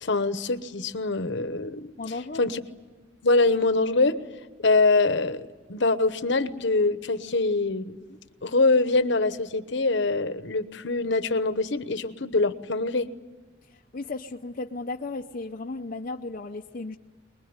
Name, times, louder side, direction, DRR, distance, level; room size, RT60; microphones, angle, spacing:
voice 1, 0.0-1.9 2.4-2.6 3.2-4.2 4.6-8.0 8.4-13.1, left 3 dB, 65° left, 12 dB, 1.1 m, -24 dB
voice 2, 2.0-2.4 13.6-17.0, left 3 dB, 45° left, 2 dB, 0.7 m, -35 dB
23.5 x 21.5 x 9.7 m, 1.3 s
head